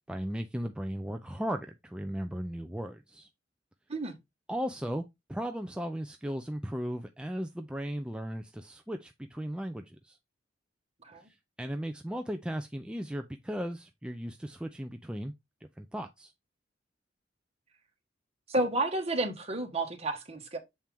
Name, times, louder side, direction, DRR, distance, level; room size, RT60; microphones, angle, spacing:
voice 1, 0.1-3.3 4.5-10.2 11.2-15.3 15.8-16.3, equal, 5° right, 0.5 m, -36 dB
voice 2, 18.5-20.6, right 2 dB, 35° right, 1.7 m, -31 dB
7.5 x 4.3 x 3.5 m
head